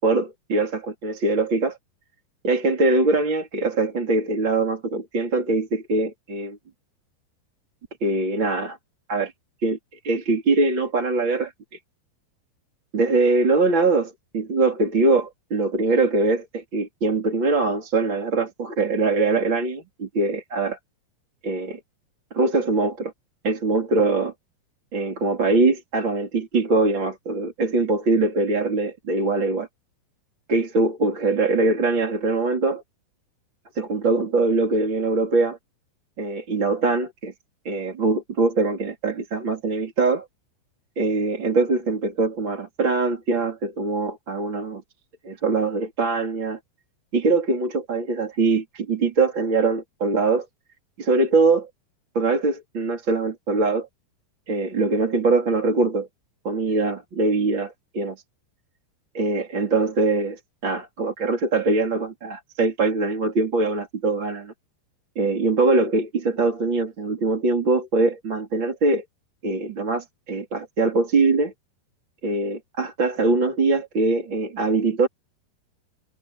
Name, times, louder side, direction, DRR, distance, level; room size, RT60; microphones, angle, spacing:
voice 1, 0.0-1.8 2.4-6.6 8.0-8.8 9.1-9.3 9.6-9.8 10.0-11.5 12.9-20.8 21.4-21.8 22.3-23.1 23.4-24.3 24.9-29.7 30.5-32.8 33.8-35.6 36.2-37.3 37.7-40.3 41.0-44.8 45.2-46.6 47.1-50.5 51.0-51.7 52.1-53.9 54.5-56.1 56.4-58.2 59.1-64.5 65.2-69.0 69.4-71.5 72.2-75.1, right 3 dB, 25° right, 4.1 m, -22 dB
omnidirectional pair, 5.1 m